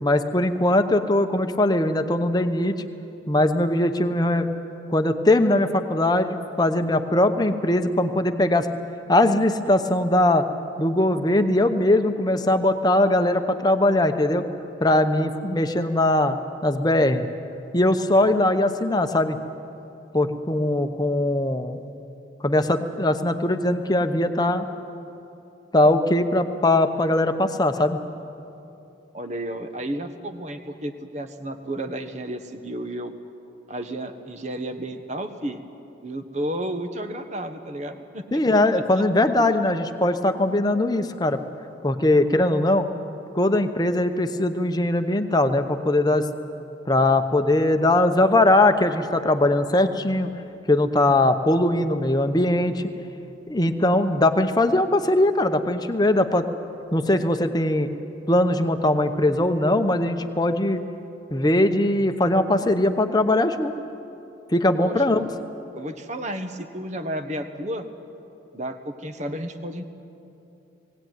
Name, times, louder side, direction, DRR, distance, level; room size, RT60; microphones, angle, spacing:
voice 1, 0.0-2.8 3.3-4.5 4.9-8.7 9.1-10.5 10.8-14.5 14.8-16.4 16.6-17.3 17.7-19.4 20.1-21.8 22.4-24.7 25.7-28.0 38.3-41.4 41.8-42.9 43.3-46.3 46.9-50.3 50.7-52.9 53.5-56.5 56.9-57.9 58.3-60.8 61.3-63.7 64.5-65.2, left 1 dB, 20° left, 7 dB, 0.9 m, -20 dB
voice 2, 29.1-33.1 33.7-35.6 36.0-38.4 64.8-65.4 65.7-67.9 68.5-69.8, right 1 dB, 35° right, 7 dB, 1.2 m, -32 dB
20.0 x 17.0 x 9.3 m, 2.8 s
head